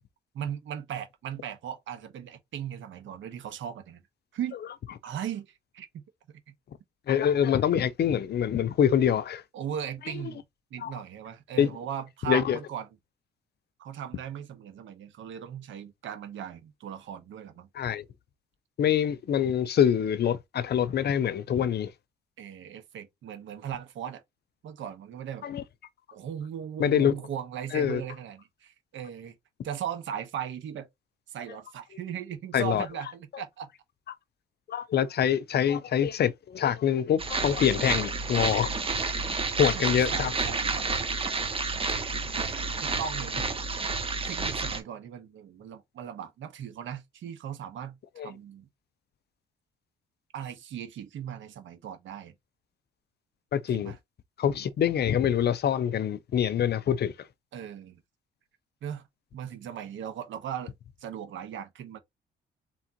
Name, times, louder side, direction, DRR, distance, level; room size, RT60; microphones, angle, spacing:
voice 1, 0.3-4.0 4.3-4.6 5.0-6.0 6.5-6.6 9.5-10.4 10.7-12.9 13.8-17.7 22.4-24.2 24.6-25.5 26.1-29.4 29.6-30.9 31.3-33.7 40.1-40.9 42.3-43.5 44.2-48.0 48.2-48.7 50.3-52.3 53.7-54.0 57.5-58.0 58.8-59.0 59.3-60.7 61.0-62.0, right 9 dB, 75° right, 1.3 m, -38 dB
voice 2, 7.1-9.4 10.1-10.2 10.8-10.9 11.6-11.7 12.3-12.6 17.7-18.0 18.8-21.9 25.4-25.6 26.8-27.2 27.7-28.0 32.5-32.9 34.7-38.7 39.6-40.3 48.2-48.3 53.5-53.9 54.4-57.1, left 9 dB, 55° left, 0.6 m, -25 dB
sound 1, 37.2-44.8, right 3 dB, 30° right, 1.3 m, -30 dB
4.2 x 3.7 x 2.9 m
cardioid pair, 90°, 20 cm